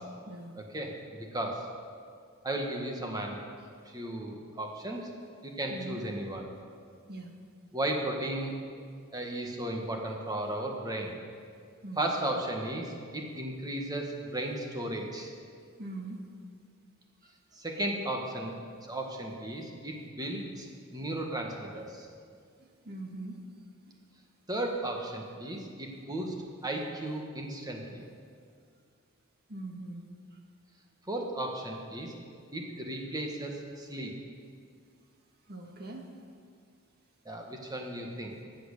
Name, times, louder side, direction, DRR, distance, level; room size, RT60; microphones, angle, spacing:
voice 1, 0.7-1.7 2.4-3.4 3.9-5.0 5.4-6.4 7.7-8.5 9.1-11.2 12.0-15.3 17.6-18.5 18.9-20.7 20.9-22.1 24.5-26.4 26.6-28.0 31.1-32.1 32.5-34.1 37.3-38.3, right 1 dB, 15° right, 1 dB, 1.6 m, -35 dB
voice 2, 5.7-6.0 7.1-7.3 11.8-12.0 15.8-16.2 22.8-23.4 23.9-24.0 29.5-30.1 35.5-36.0, right 2 dB, 45° right, 2 dB, 1.7 m, -41 dB
15.0 x 8.0 x 6.7 m, 2.2 s
head